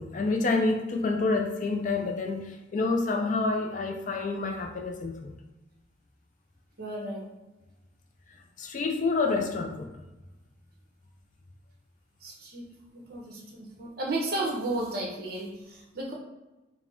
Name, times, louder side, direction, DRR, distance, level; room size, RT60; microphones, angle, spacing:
voice 1, 0.0-5.3 8.6-9.9, left 3 dB, 40° left, 4 dB, 0.4 m, -28 dB
voice 2, 6.8-7.2 12.2-12.6 12.9-16.1, right 2 dB, 50° right, -1 dB, 0.9 m, -33 dB
4.0 x 2.0 x 4.4 m, 1.0 s
head